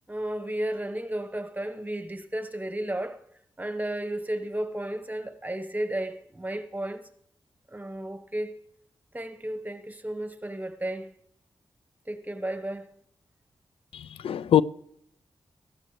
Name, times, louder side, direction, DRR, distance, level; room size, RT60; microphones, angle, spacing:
voice 1, 0.1-3.2 3.6-7.1 7.7-8.5 9.1-11.1 12.1-12.9, right 1 dB, 15° right, 1.2 m, -33 dB
voice 2, 13.9-14.6, left 10 dB, 80° left, 0.4 m, -23 dB
14.0 x 13.5 x 3.3 m
cardioid pair, 45°, 9 cm